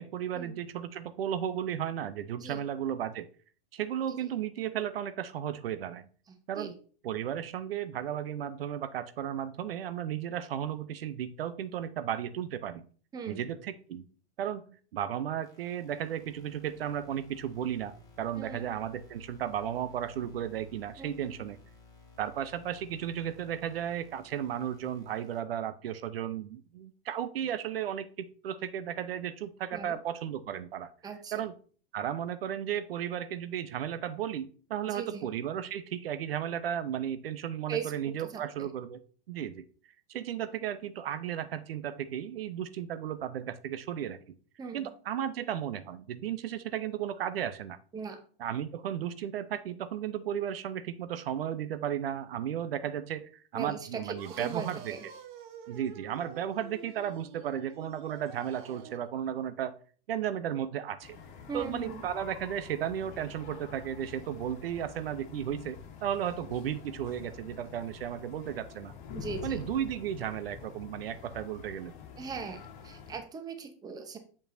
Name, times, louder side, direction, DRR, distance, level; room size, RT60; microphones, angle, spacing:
voice 1, 0.0-3.3 3.7-6.1 6.5-6.8 7.0-12.8 13.3-14.0 14.4-21.6 22.2-30.9 31.3-31.5 31.9-39.0 39.3-39.6 40.1-44.2 44.7-47.8 48.4-54.9 55.7-59.8 60.1-61.2 61.5-68.9 69.4-71.9, right 10 dB, 75° right, 13 dB, 0.7 m, -34 dB
voice 2, 13.1-13.4 18.4-18.7 21.0-21.5 29.7-30.0 31.0-31.4 34.9-35.3 37.7-38.7 44.6-44.9 47.9-48.2 53.5-55.0 61.5-62.0 69.1-69.6 72.2-74.2, right 5 dB, 15° right, 7 dB, 0.8 m, -39 dB
sound 1, 15.4-25.4, left 3 dB, 10° left, 1.7 m, -57 dB
sound 2, 54.2-59.1, right 7 dB, 55° right, 0.9 m, -48 dB
sound 3, 61.0-73.2, left 6 dB, 55° left, 1.3 m, -47 dB
6.9 x 5.3 x 2.6 m, 0.42 s
hypercardioid pair, 130°, 29 cm